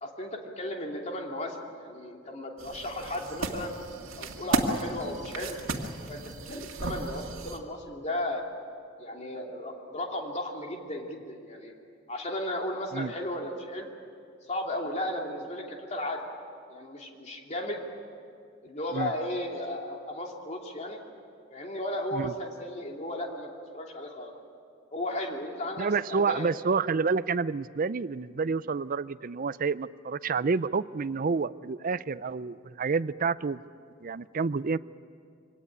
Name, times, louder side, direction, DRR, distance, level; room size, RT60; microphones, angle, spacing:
voice 1, 0.0-3.7 4.2-5.6 6.1-8.4 9.0-11.7 12.1-13.9 14.5-16.2 16.7-17.8 18.6-21.0 21.5-24.3 24.9-26.5, left 1 dB, 35° left, 1 dB, 2.9 m, -35 dB
sound 1, 2.6-7.6, right 2 dB, 75° right, 2.0 m, -34 dB
voice 2, 25.8-33.6 34.0-34.8, right 4 dB, 45° right, 16 dB, 0.5 m, -29 dB
24.5 x 18.0 x 10.0 m, 2.4 s
head